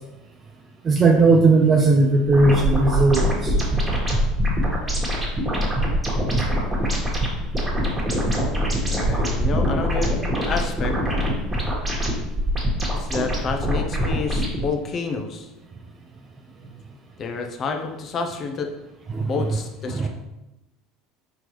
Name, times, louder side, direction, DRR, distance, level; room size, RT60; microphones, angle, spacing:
voice 1, 0.8-3.5 19.1-19.3 19.9-20.1, right 3 dB, 30° right, 2 dB, 0.5 m, -17 dB
sound 1, 2.3-14.7, equal, 15° right, 1.5 m, -23 dB
voice 2, 8.9-10.2 10.5-10.9 12.9-15.5 17.2-18.7 19.3-20.1, left 4 dB, 45° left, 4 dB, 0.6 m, -29 dB
4.5 x 3.8 x 3.1 m, 0.98 s
hypercardioid pair, 85°, 0 cm